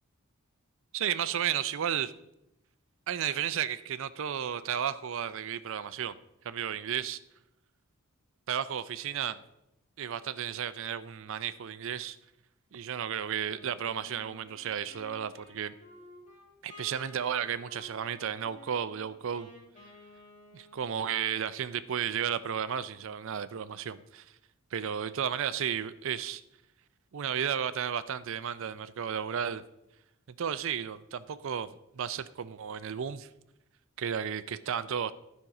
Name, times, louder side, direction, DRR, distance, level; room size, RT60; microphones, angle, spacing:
voice 1, 0.9-2.1 3.1-6.2 6.4-7.2 8.5-9.4 10.0-12.2 12.7-15.7 16.6-19.5 20.5-24.3 24.7-26.4 27.1-29.6 30.3-33.3 34.0-35.1, right 8 dB, 60° right, 14 dB, 0.4 m, -33 dB
Wind instrument woodwind instrument, 13.5-21.2, left 2 dB, 30° left, 2.1 m, -53 dB
12.0 x 5.3 x 4.8 m, 0.87 s
head